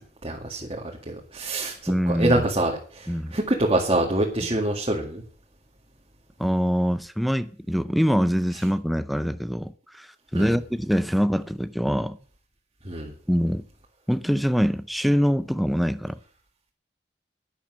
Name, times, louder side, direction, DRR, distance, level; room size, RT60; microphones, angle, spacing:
voice 1, 0.2-5.2 10.3-10.6 12.8-13.1, right 1 dB, 30° right, 2.0 m, -26 dB
voice 2, 1.9-2.4 3.1-3.3 6.4-12.2 13.3-13.6 14.1-16.2, equal, ahead, 0.5 m, -24 dB
11.5 x 10.5 x 6.3 m
head